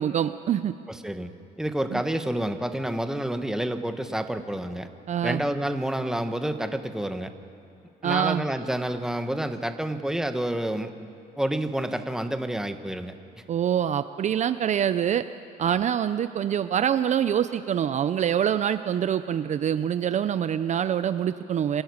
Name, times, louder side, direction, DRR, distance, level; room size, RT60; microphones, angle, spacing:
voice 1, 0.0-0.7 1.9-2.0 5.1-5.4 8.0-8.4 13.5-15.3 15.6-21.8, right 9 dB, 45° right, 11 dB, 0.6 m, -25 dB
voice 2, 0.9-1.3 1.6-4.9 5.2-7.3 8.0-10.9 11.4-13.1, right 1 dB, 5° right, 8 dB, 1.2 m, -29 dB
26.0 x 13.5 x 9.6 m, 2.7 s
cardioid pair, 110°, 17 cm